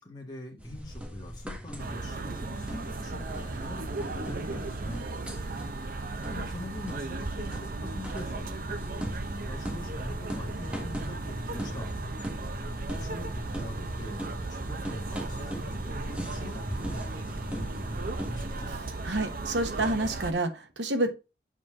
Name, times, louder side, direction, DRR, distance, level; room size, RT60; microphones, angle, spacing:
voice 1, 0.0-5.0 5.7-5.9 6.3-11.9 12.9-18.7, left 1 dB, 25° left, 1.7 m, -43 dB
sound 1, 0.6-18.8, equal, 5° right, 1.5 m, -39 dB
sound 2, 1.8-20.3, right 3 dB, 55° right, 0.8 m, -36 dB
voice 2, 19.0-21.1, right 2 dB, 85° right, 1.2 m, -28 dB
7.3 x 4.4 x 3.6 m
head